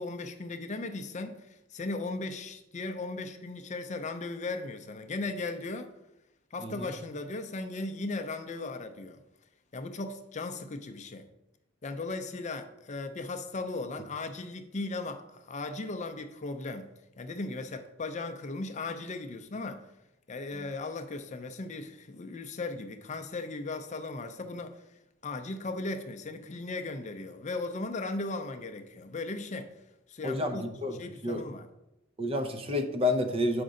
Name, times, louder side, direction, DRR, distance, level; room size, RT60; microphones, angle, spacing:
voice 1, 0.0-5.9 6.5-9.2 9.7-11.3 11.8-16.9 17.2-19.8 20.3-24.8 25.2-29.7 30.1-30.6 30.9-31.7, left 3 dB, 40° left, 0.5 m, -37 dB
voice 2, 30.2-30.9 31.2-31.4 32.2-33.6, left 2 dB, 30° right, 0.7 m, -29 dB
7.8 x 5.2 x 3.7 m
head